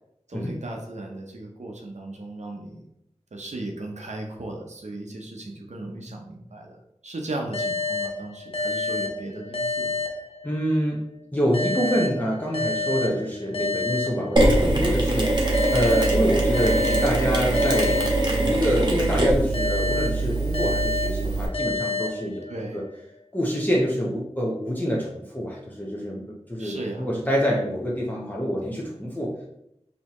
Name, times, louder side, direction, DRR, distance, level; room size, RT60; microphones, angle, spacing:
voice 1, 0.3-2.9 3.3-10.0 22.5-22.8 26.6-27.1, right 2 dB, 85° right, 1 dB, 0.7 m, -36 dB
sound 1, 7.5-10.9 11.5-14.8 15.5-18.9 19.5-22.8, left 2 dB, 55° left, 0.7 m, -30 dB
voice 2, 10.4-11.0 11.3-18.0 18.3-22.5 22.7-22.8 23.3-26.2 26.5-29.3, equal, 15° left, -4 dB, 0.7 m, -26 dB
Mechanisms, 14.4-21.5, right 2 dB, 40° right, 1.0 m, -22 dB
4.2 x 2.8 x 3.0 m, 0.77 s
wide cardioid pair, 50°, 12 cm